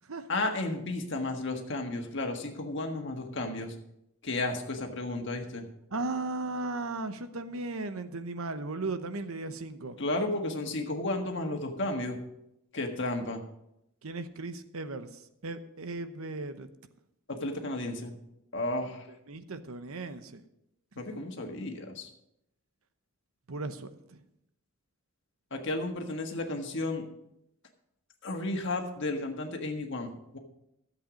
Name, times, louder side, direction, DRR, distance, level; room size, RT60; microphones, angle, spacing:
voice 1, 0.3-3.7 4.2-5.6 10.0-12.2 12.7-13.4 17.3-18.1 18.5-19.1 21.0-22.1 25.5-27.0 28.2-30.4, left 2 dB, 55° left, 1.6 m, -33 dB
voice 2, 5.9-10.0 14.0-16.7 19.3-20.4 23.5-24.2, right 3 dB, 80° right, 0.9 m, -36 dB
13.5 x 8.0 x 5.1 m
head